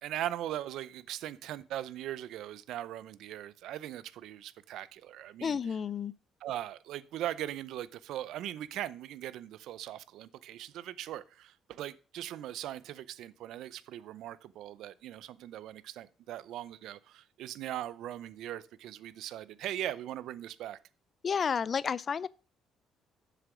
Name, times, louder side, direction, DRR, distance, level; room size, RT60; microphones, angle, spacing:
voice 1, 0.0-5.8 6.4-20.8, right 12 dB, 75° right, 0.6 m, -40 dB
voice 2, 5.4-6.1 21.2-22.3, left 6 dB, 35° left, 0.4 m, -31 dB
7.3 x 6.7 x 6.1 m
cardioid pair, 125°, 0 cm